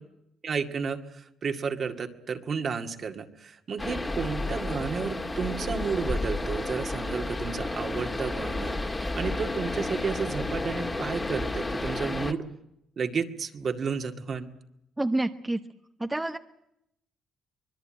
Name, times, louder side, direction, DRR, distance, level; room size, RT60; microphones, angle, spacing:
voice 1, 0.4-8.8 9.2-12.5 13.0-14.5, right 5 dB, 50° right, 5 dB, 2.1 m, -32 dB
sound 1, 3.8-12.3, left 2 dB, 20° left, 2.1 m, -31 dB
voice 2, 15.0-15.7 16.0-16.4, right 2 dB, 15° right, 6 dB, 1.1 m, -28 dB
24.5 x 21.0 x 8.9 m, 0.81 s
cardioid pair, 90°, 0 cm